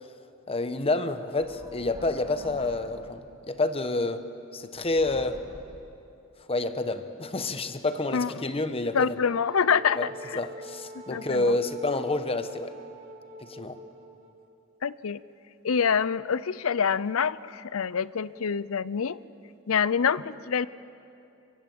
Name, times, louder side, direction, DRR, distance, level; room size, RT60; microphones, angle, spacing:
voice 1, 0.5-4.2 4.5-5.4 6.5-9.2 10.0-10.1 10.4-12.7 13.4-13.8, left 2 dB, 30° left, 9 dB, 1.1 m, -28 dB
sound 1, 1.4-3.4 4.7-6.1, right 1 dB, 20° right, 1.6 m, -48 dB
voice 2, 8.9-10.4 11.1-11.5 14.8-15.2 15.6-19.2 19.7-20.7, left 6 dB, 80° left, 18 dB, 0.6 m, -26 dB
Wind instrument woodwind instrument, 9.3-14.4, right 1 dB, 45° right, 2.4 m, -44 dB
23.0 x 23.0 x 7.8 m, 2.7 s
head